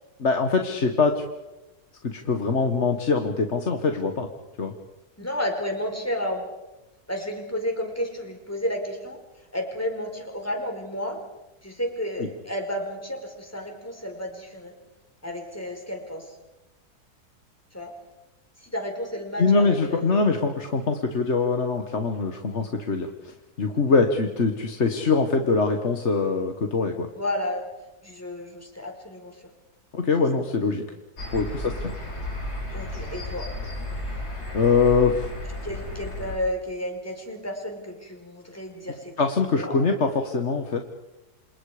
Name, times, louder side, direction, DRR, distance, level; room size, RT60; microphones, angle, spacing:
voice 1, 0.2-1.2 2.0-4.3 4.6-4.7 12.2-12.3 19.4-27.1 29.9-30.8 31.3-31.9 34.5-35.3 39.2-40.8, left 4 dB, 45° left, 5 dB, 1.7 m, -23 dB
voice 2, 5.2-6.4 7.1-9.2 9.5-11.2 11.6-14.7 15.2-16.3 17.7-17.9 18.6-20.4 22.6-22.7 23.9-24.0 27.1-27.7 28.0-29.4 30.8-31.0 31.6-31.7 32.7-33.5 35.6-39.1 39.5-39.8, left 1 dB, 10° left, 2 dB, 4.9 m, -32 dB
sound 1, 31.2-36.4, left 1 dB, 70° left, 5.8 m, -33 dB
28.5 x 27.5 x 5.0 m, 1.0 s
omnidirectional pair, 1.7 m